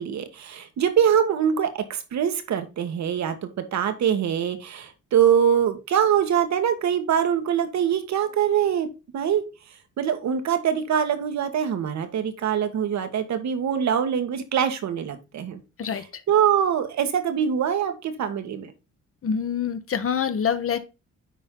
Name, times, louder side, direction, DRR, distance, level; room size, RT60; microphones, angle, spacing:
voice 1, 0.0-8.9 9.1-9.4 10.0-15.6 16.3-18.7, right 8 dB, 65° right, 8 dB, 1.5 m, -23 dB
voice 2, 19.2-20.8, left 7 dB, 45° left, 10 dB, 1.2 m, -25 dB
9.9 x 4.2 x 3.7 m, 0.28 s
cardioid pair, 90°, 30 cm